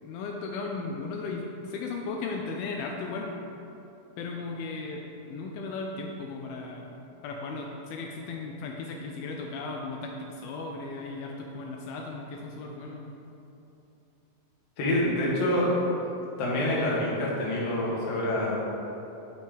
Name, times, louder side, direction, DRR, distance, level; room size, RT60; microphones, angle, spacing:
voice 1, 0.0-3.3 4.2-13.1, left 3 dB, 80° left, 1 dB, 2.3 m, -36 dB
voice 2, 14.8-15.7 16.4-18.5, left 1 dB, 60° left, -5 dB, 1.9 m, -26 dB
8.1 x 5.8 x 3.5 m, 2.9 s
omnidirectional pair, 4.4 m